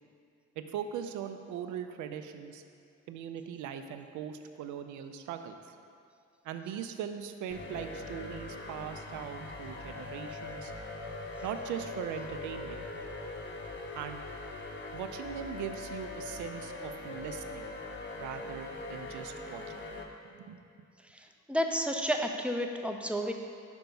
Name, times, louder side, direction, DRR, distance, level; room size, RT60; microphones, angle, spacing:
voice 1, 0.6-2.6 3.1-5.6 6.4-10.7 11.4-12.8 13.9-14.2 14.9-17.7 18.2-19.8 20.2-20.6, right 8 dB, 80° right, 8 dB, 0.5 m, -40 dB
sound 1, 7.5-20.0, left 2 dB, 40° left, 0.7 m, -41 dB
voice 2, 21.1-23.3, equal, 5° right, 3 dB, 0.4 m, -31 dB
5.2 x 4.5 x 5.3 m, 2.5 s
cardioid pair, 90°, 30 cm